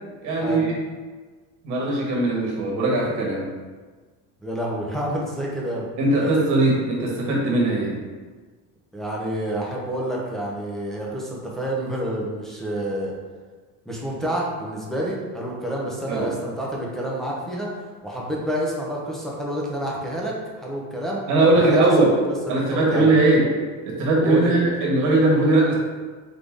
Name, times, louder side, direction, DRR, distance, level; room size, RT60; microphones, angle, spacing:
voice 1, 0.2-0.8 1.6-3.5 6.0-8.0 16.1-16.3 21.3-22.1 22.5-23.5 23.8-25.7, right 2 dB, 50° right, -3 dB, 1.3 m, -20 dB
voice 2, 4.4-5.9 6.2-6.3 8.9-13.1 13.9-17.7 18.0-21.2 21.7-23.2 24.2-24.6, right 1 dB, ahead, -5 dB, 0.5 m, -28 dB
4.0 x 3.4 x 3.5 m, 1.4 s
cardioid pair, 155°, 39 cm